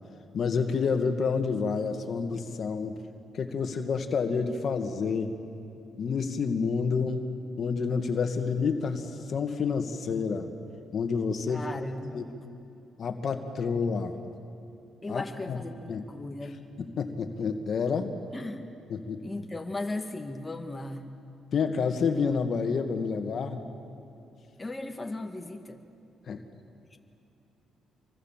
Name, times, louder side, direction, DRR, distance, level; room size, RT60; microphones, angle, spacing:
voice 1, 0.3-2.9 3.3-5.3 6.0-7.3 7.6-10.5 10.9-11.7 12.1-12.2 13.0-14.2 15.1-16.0 16.8-18.1 18.9-19.2 21.5-23.6 26.3-26.4, left 5 dB, 55° left, 6 dB, 1.9 m, -29 dB
voice 2, 11.5-12.2 15.0-16.6 18.3-18.7 19.2-21.1 24.6-25.8 26.9-27.0, left 2 dB, 20° left, 4 dB, 1.8 m, -37 dB
26.5 x 24.0 x 7.5 m, 2.7 s
cardioid pair, 90°, 0 cm